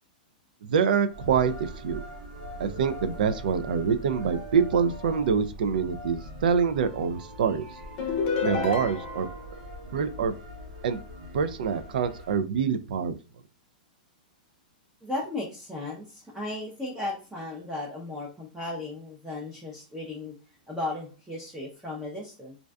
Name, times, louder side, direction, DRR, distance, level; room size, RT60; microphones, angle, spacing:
voice 1, 0.6-2.0 2.6-7.6 8.4-9.3 9.9-10.3 10.8-11.0 11.3-13.2, right 6 dB, 75° right, 11 dB, 0.3 m, -25 dB
sound 1, 1.1-12.4, equal, 90° right, 0.8 m, -42 dB
sound 2, 8.0-9.5, left 5 dB, 45° left, 0.6 m, -29 dB
voice 2, 15.0-20.3 20.7-22.6, left 2 dB, 5° right, -4 dB, 0.5 m, -35 dB
2.5 x 2.2 x 2.2 m, 0.33 s
hypercardioid pair, 145°, 5 cm